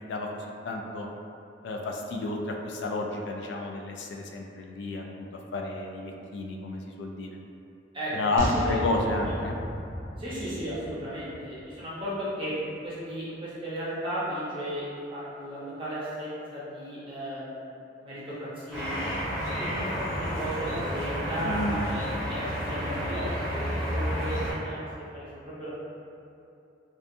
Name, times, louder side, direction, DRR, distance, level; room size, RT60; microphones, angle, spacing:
voice 1, 0.6-1.1 1.6-5.3 5.5-7.4 8.1-9.5 21.4-21.8, left 2 dB, 70° left, 1 dB, 0.3 m, -31 dB
voice 2, 7.9-8.8 9.2-9.3 10.2-17.7 18.0-18.9 19.6-24.9 25.1-25.7, equal, 30° right, -9 dB, 0.6 m, -35 dB
sound 1, 8.4-11.8 12.1-12.2, right 1 dB, 85° right, 0.6 m, -35 dB
sound 2, 18.7-24.5, equal, 5° left, 0.9 m, -31 dB
2.6 x 2.3 x 2.5 m, 2.7 s
head